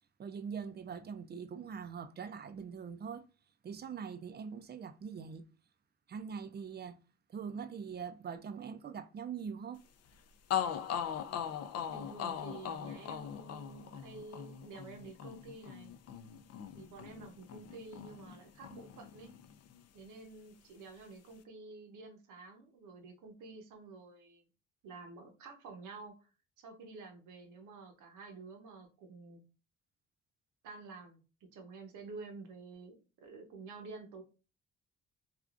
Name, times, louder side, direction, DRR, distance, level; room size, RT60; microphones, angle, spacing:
voice 1, 0.2-3.2 3.6-5.4 6.1-7.0 7.3-9.8, right 6 dB, 35° right, 0.4 m, -43 dB
sound 1, 10.1-10.2 10.5-18.4 18.6-19.8, left 9 dB, 55° left, 0.4 m, -40 dB
voice 2, 11.9-15.9 16.7-19.3 19.9-24.4 24.8-26.3 26.6-29.4 30.6-34.2, right 3 dB, 80° right, 0.9 m, -50 dB
3.4 x 2.4 x 2.4 m
cardioid pair, 90°, 30 cm